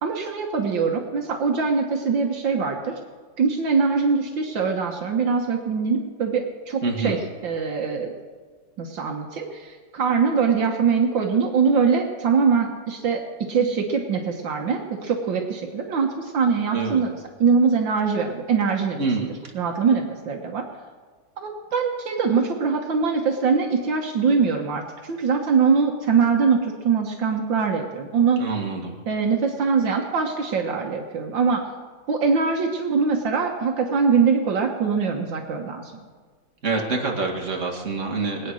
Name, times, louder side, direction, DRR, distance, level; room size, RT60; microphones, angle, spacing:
voice 1, 0.0-3.0 3.4-7.2 7.4-8.1 8.8-13.2 13.5-17.1 17.4-19.0 19.5-20.6 21.4-28.5 29.1-31.7 32.1-35.9, right 5 dB, 75° right, 2 dB, 2.0 m, -22 dB
voice 2, 6.8-7.2 16.7-17.0 19.0-19.3 28.4-29.0 36.6-38.5, right 4 dB, 40° right, 0 dB, 2.4 m, -26 dB
22.0 x 9.2 x 6.3 m, 1.5 s
omnidirectional pair, 2.1 m